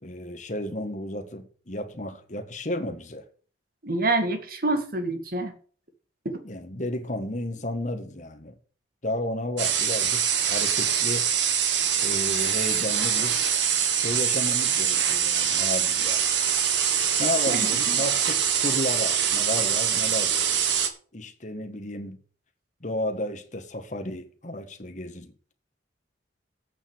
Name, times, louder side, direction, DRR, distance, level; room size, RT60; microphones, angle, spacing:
voice 1, 0.0-3.3 6.4-8.6 9.0-11.3 12.0-13.4 13.9-16.2 17.2-20.4 21.1-22.2 22.8-25.5, left 1 dB, 40° left, 1.6 m, -33 dB
voice 2, 3.8-5.5 6.2-6.4 17.5-18.0, right 2 dB, 50° right, 2.1 m, -27 dB
sound 1, 9.6-20.9, right 8 dB, 75° right, 1.6 m, -24 dB
8.6 x 7.0 x 8.0 m
head